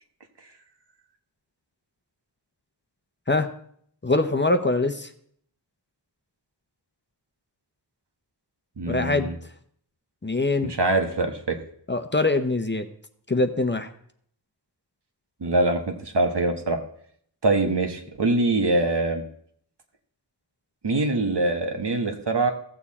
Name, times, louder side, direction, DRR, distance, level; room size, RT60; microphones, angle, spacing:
voice 1, 4.0-5.1 8.9-9.3 10.2-10.7 11.9-12.9 13.3-13.9, left 2 dB, 25° left, 7 dB, 0.8 m, -23 dB
voice 2, 8.8-9.3 10.6-11.6 15.4-16.8 17.4-19.2 20.8-22.5, right 2 dB, 70° right, 4 dB, 1.5 m, -23 dB
15.0 x 7.0 x 4.3 m, 0.64 s
wide cardioid pair, 55°, 42 cm